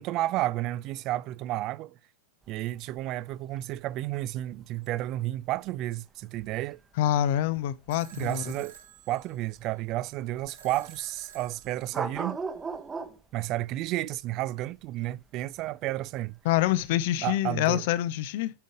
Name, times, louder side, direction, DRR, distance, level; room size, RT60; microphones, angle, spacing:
voice 1, 0.0-1.9 2.5-6.8 8.1-8.8 9.1-12.4 13.3-16.4 17.2-17.8, right 15 dB, 40° right, 0.4 m, -32 dB
sound 1, 2.4-17.0, right 4 dB, 15° right, 1.0 m, -41 dB
voice 2, 7.0-8.4 16.4-18.5, left 13 dB, 50° left, 0.6 m, -26 dB
sound 2, 7.9-12.9, right 9 dB, 65° right, 2.1 m, -52 dB
11.5 x 5.3 x 4.9 m
figure-of-eight pair, 90°, 0 cm